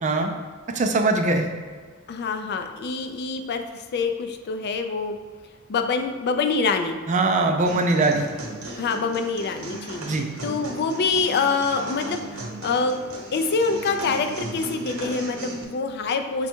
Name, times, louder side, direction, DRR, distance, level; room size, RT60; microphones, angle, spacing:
voice 1, 0.0-0.3 0.7-1.5 7.1-8.4 10.0-10.3, right 2 dB, 35° right, 4 dB, 0.4 m, -22 dB
voice 2, 2.1-5.2 5.7-7.0 8.8-13.0 13.3-16.5, left 4 dB, 50° left, 6 dB, 0.4 m, -26 dB
sound 1, 7.7-15.6, right 2 dB, 85° right, 0.9 m, -36 dB
5.1 x 2.3 x 4.4 m, 1.5 s
head